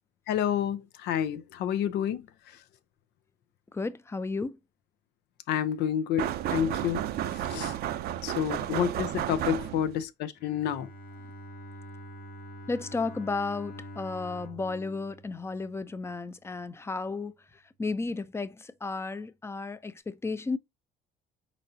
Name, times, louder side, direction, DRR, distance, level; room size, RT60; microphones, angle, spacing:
voice 1, 0.3-2.2 5.5-7.0 7.5-7.7 8.2-10.9, left 10 dB, 80° left, 0.7 m, -29 dB
voice 2, 3.7-4.6 12.7-17.3 17.8-20.6, left 3 dB, 15° left, 0.5 m, -33 dB
sound 1, 6.2-10.0, right 11 dB, 65° right, 0.5 m, -32 dB
Bowed string instrument, 10.4-16.3, equal, 60° left, 1.2 m, -46 dB
4.3 x 4.0 x 2.7 m
cardioid pair, 110°, 17 cm